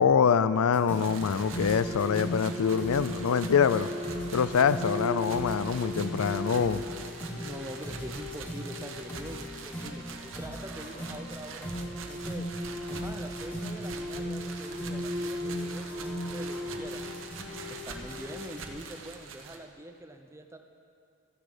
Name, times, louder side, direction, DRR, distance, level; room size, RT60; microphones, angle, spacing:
voice 1, 0.0-3.9 4.3-6.8, left 6 dB, 80° left, 15 dB, 0.4 m, -25 dB
sound 1, 0.7-18.7, left 1 dB, 10° left, 1.3 m, -37 dB
sound 2, 0.9-19.6, right 4 dB, 65° right, 1.0 m, -44 dB
voice 2, 7.4-11.7 12.0-12.5 12.9-17.0 17.7-20.6, right 1 dB, 10° right, 6 dB, 0.4 m, -44 dB
13.5 x 9.8 x 5.0 m, 2.6 s
head